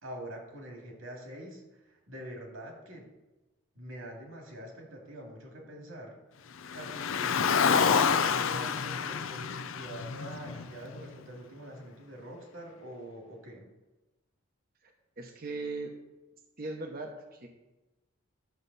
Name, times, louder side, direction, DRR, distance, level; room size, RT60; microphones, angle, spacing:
voice 1, 0.0-3.1 3.7-6.2 6.7-13.7, right 1 dB, 75° right, 0 dB, 2.4 m, -45 dB
Car, 6.6-11.0, left 6 dB, 70° left, 0.5 m, -28 dB
voice 2, 14.8-15.9 16.6-17.5, right 3 dB, 45° right, 3 dB, 0.9 m, -39 dB
12.0 x 7.0 x 4.1 m, 1.1 s
head